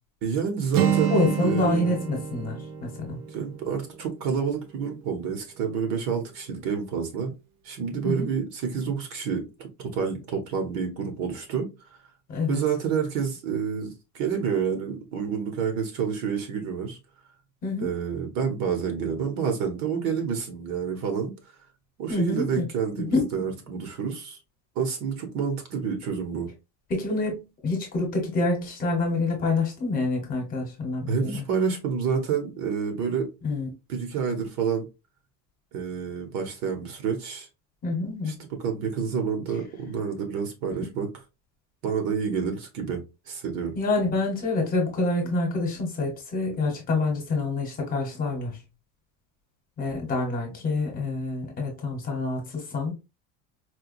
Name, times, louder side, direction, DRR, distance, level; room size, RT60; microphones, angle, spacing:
voice 1, 0.2-1.9 3.3-7.3 7.6-11.7 12.5-17.0 17.8-21.3 22.0-24.4 24.8-26.5 31.1-33.3 33.9-34.8 35.7-37.5 38.3-41.1 41.8-43.7, right 6 dB, 50° right, 1.0 m, -28 dB
Acoustic guitar, 0.7-4.7, right 8 dB, 80° right, 0.9 m, -29 dB
voice 2, 1.1-3.2 8.0-8.3 12.3-12.6 17.6-17.9 22.1-22.6 23.0-23.5 26.9-31.4 33.4-33.7 37.8-38.4 40.8-40.9 43.7-48.6 49.8-52.9, left 2 dB, 25° left, 1.1 m, -27 dB
4.4 x 2.3 x 2.5 m
cardioid pair, 175°, 37 cm